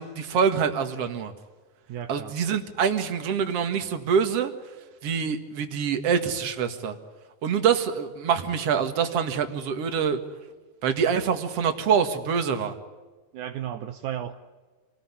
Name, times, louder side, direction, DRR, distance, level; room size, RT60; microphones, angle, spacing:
voice 1, 0.0-1.3 2.1-4.5 5.0-7.0 7.4-10.2 10.8-12.7, right 7 dB, 55° right, 7 dB, 2.7 m, -25 dB
voice 2, 1.9-2.4 13.3-14.4, right 10 dB, 75° right, 6 dB, 2.3 m, -34 dB
27.5 x 19.0 x 9.8 m, 1.3 s
omnidirectional pair, 3.5 m